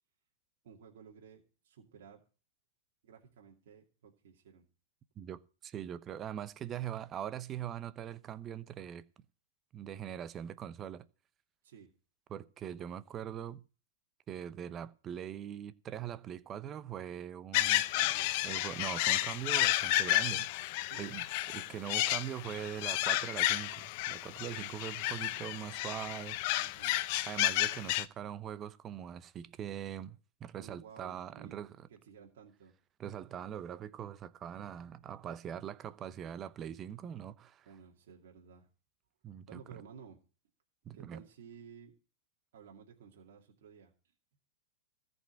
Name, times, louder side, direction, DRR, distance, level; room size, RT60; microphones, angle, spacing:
voice 1, 0.6-2.2 3.0-4.6 11.6-11.9 17.5-18.3 20.8-21.1 26.6-27.0 30.6-31.6 31.9-32.8 37.6-38.7 39.5-40.2 40.9-41.9 42.5-43.9, right 7 dB, 70° right, 2.4 m, -54 dB
voice 2, 5.2-9.0 9.7-11.0 12.3-13.6 14.3-17.8 18.4-20.5 21.0-26.4 27.3-31.9 33.0-37.7 39.2-39.6 40.8-41.2, right 10 dB, 30° right, 0.8 m, -42 dB
sound 1, 17.5-28.0, left 16 dB, 55° left, 0.6 m, -32 dB
14.5 x 5.4 x 8.8 m
hypercardioid pair, 120°, 0 cm